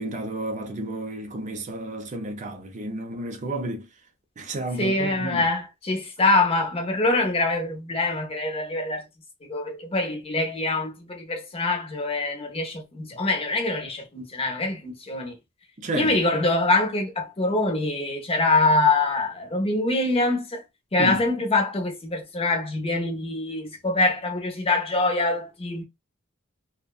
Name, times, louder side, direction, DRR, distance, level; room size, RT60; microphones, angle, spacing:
voice 1, 0.0-3.9 4.4-5.5 15.8-16.2 21.0-21.2, right 1 dB, 35° right, 0.5 m, -31 dB
voice 2, 4.8-9.0 9.5-15.3 15.9-20.6 20.9-25.8, left 2 dB, 30° left, 0.7 m, -24 dB
2.6 x 2.1 x 2.3 m
head